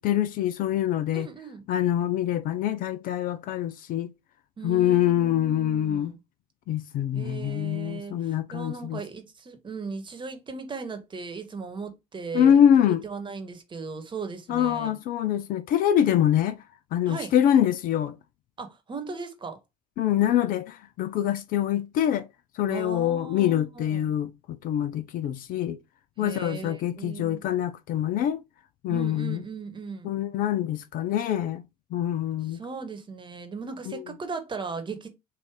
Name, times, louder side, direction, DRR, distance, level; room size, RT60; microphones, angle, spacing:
voice 1, 0.0-1.3 1.7-4.1 4.6-6.1 6.7-9.0 12.3-13.0 14.5-16.6 16.9-18.2 20.0-22.3 22.5-24.3 24.6-25.8 26.2-28.4 28.8-29.4 30.0-31.6 31.9-32.6, left 10 dB, 45° left, 0.4 m, -24 dB
voice 2, 1.1-1.6 4.6-6.2 7.1-12.6 13.0-15.0 17.1-17.3 18.6-19.6 22.7-24.1 26.2-27.4 28.9-30.1 32.5-35.1, right 4 dB, 25° right, 1.2 m, -37 dB
4.7 x 2.5 x 3.6 m
figure-of-eight pair, 65°, 21 cm